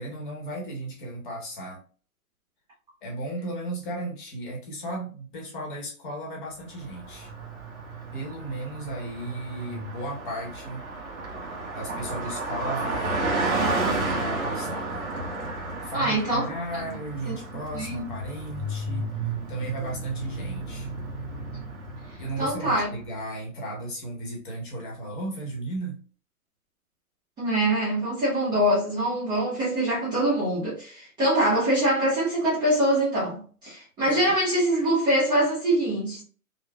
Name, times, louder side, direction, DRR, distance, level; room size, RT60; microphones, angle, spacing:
voice 1, 0.0-1.8 3.0-7.3 8.1-10.8 11.7-13.5 13.9-15.1 15.8-19.1 19.5-20.9 22.2-26.0 34.1-34.3, right 1 dB, 35° left, 1.0 m, -35 dB
Car passing by, 6.8-22.8, right 2 dB, 50° right, 1.5 m, -32 dB
voice 2, 15.9-16.8 17.2-17.4 17.7-18.1 22.4-22.9 27.4-36.2, right 1 dB, 10° right, 0.8 m, -24 dB
3.1 x 2.1 x 2.3 m
hypercardioid pair, 140°, 44 cm